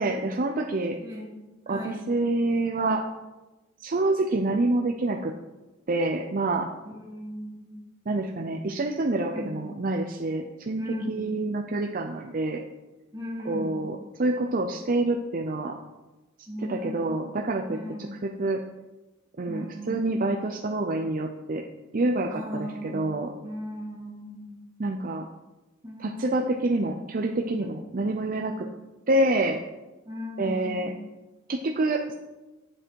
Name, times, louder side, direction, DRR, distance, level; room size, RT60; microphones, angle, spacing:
voice 1, 0.0-1.0 1.7-3.0 3.8-5.3 5.9-6.7 8.1-12.6 13.5-15.7 16.7-17.8 18.2-18.6 19.4-21.6 21.9-23.3 24.8-25.2 26.0-28.7 29.1-29.6 30.4-30.9 31.5-32.1, right 2 dB, 45° right, 2 dB, 0.6 m, -27 dB
voice 2, 1.0-1.3 1.7-2.1 6.9-7.8 9.3-9.6 10.8-11.3 13.1-13.8 16.5-17.3 17.7-18.2 19.5-20.1 22.3-23.1 23.4-24.6 25.8-26.7 30.1-30.9, left 1 dB, 20° right, -3 dB, 2.4 m, -37 dB
10.0 x 7.6 x 4.6 m, 1.1 s
head